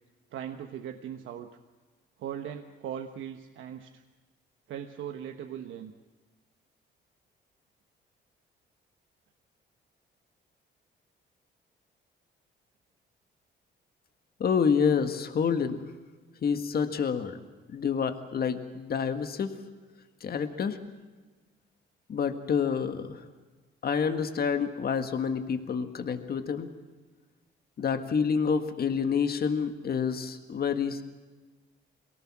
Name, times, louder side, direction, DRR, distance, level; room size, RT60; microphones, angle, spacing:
voice 1, 0.3-1.5 2.2-4.0 4.7-5.9, right 9 dB, 80° right, 6 dB, 1.2 m, -39 dB
voice 2, 14.4-15.9 16.4-17.4 17.7-19.5 20.2-20.8 22.1-23.2 23.8-26.7 27.8-31.0, left 6 dB, 50° left, 8 dB, 1.7 m, -28 dB
23.0 x 18.0 x 7.3 m, 1.3 s
cardioid pair, 90°, 20 cm